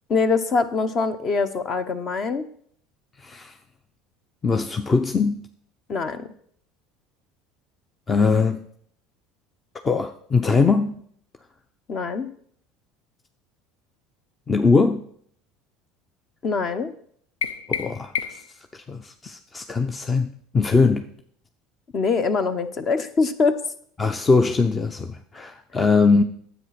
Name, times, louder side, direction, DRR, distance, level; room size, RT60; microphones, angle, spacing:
voice 1, 0.1-2.4 5.9-6.3 11.9-12.3 16.4-16.9 21.9-23.6, left 4 dB, 40° left, 1.1 m, -23 dB
voice 2, 3.2-3.5 4.4-5.4 8.1-8.6 9.8-11.0 14.5-15.1 17.8-21.1 24.0-26.2, left 4 dB, 25° left, 0.7 m, -21 dB
sound 1, 17.4-18.6, left 7 dB, 90° left, 0.5 m, -30 dB
9.8 x 8.0 x 6.0 m
supercardioid pair, 90°, 0 cm